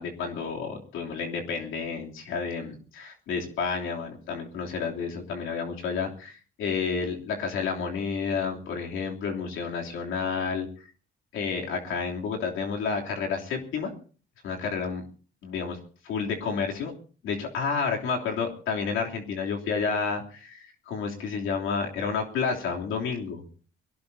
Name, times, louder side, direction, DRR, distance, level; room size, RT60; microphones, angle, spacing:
voice 1, 0.0-10.7 11.3-13.9 14.4-15.0 15.4-15.8 16.0-16.9 17.2-23.4, left 5 dB, 85° left, 0 dB, 3.2 m, -30 dB
23.5 x 17.5 x 2.8 m, 0.41 s
cardioid pair, 90°, 20 cm